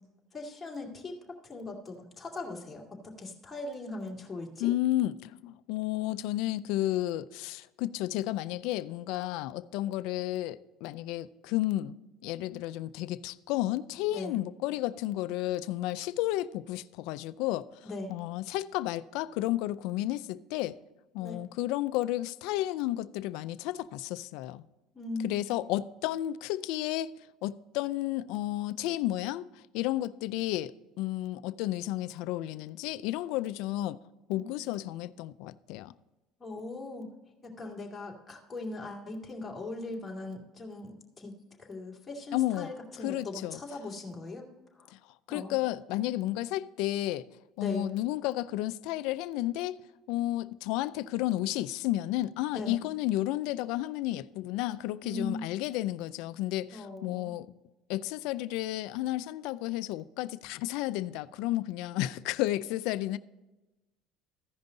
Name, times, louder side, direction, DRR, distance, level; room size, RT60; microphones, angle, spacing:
voice 1, 0.3-4.7 14.1-14.4 17.8-18.1 21.2-21.4 24.9-25.3 34.3-34.5 36.4-37.1 37.4-41.3 41.6-44.9 45.3-45.5 47.6-47.9 52.5-52.7 55.0-55.4 56.7-57.3, left 2 dB, 15° left, 2.4 m, -40 dB
voice 2, 4.6-12.0 12.2-17.7 18.1-20.8 21.1-24.6 25.2-27.1 27.4-34.0 34.3-35.9 42.3-42.7 43.0-43.6 44.9-45.0 45.3-47.3 47.6-49.8 50.1-57.5 57.9-63.2, left 15 dB, 75° left, 0.4 m, -32 dB
15.0 x 5.3 x 3.9 m
cardioid pair, 115°, 0 cm